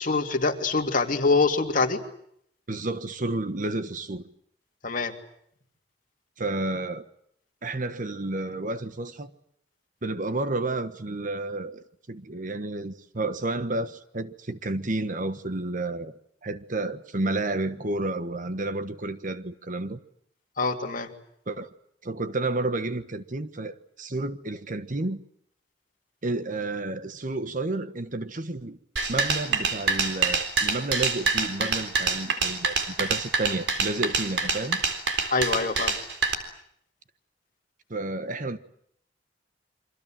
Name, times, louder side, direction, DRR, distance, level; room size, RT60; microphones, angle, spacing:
voice 1, 0.0-2.0 4.8-5.1 20.6-21.1 35.3-36.0, left 3 dB, 50° left, 2.7 m, -24 dB
voice 2, 2.7-4.3 6.4-7.1 7.6-9.3 10.0-20.0 21.5-21.7 22.0-25.2 26.2-28.8 29.1-34.8 37.9-38.6, right 2 dB, 45° right, 1.3 m, -31 dB
sound 1, 29.0-36.3, right 4 dB, 85° right, 3.9 m, -26 dB
29.0 x 24.5 x 7.6 m
head